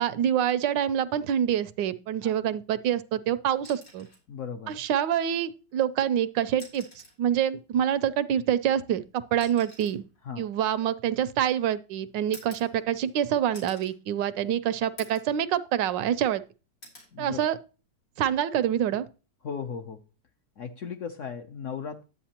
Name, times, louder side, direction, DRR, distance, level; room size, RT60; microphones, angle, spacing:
voice 1, 0.0-4.1 4.7-6.9 7.2-10.0 10.4-16.4 17.2-17.6 18.2-19.1, right 10 dB, 90° right, 1.3 m, -26 dB
sound 1, 3.6-4.3 5.7-5.8 6.5-7.3 8.4-11.5 12.3-13.2 13.5-14.0 14.4-14.5 15.0-15.4 15.8-16.4 16.8-17.1 18.6-18.8, left 1 dB, 90° left, 4.0 m, -50 dB
voice 2, 4.3-4.7 10.2-10.5 17.1-17.4 19.4-20.0 20.6-22.0, left 6 dB, 60° left, 0.8 m, -36 dB
11.0 x 8.2 x 2.9 m
omnidirectional pair, 1.9 m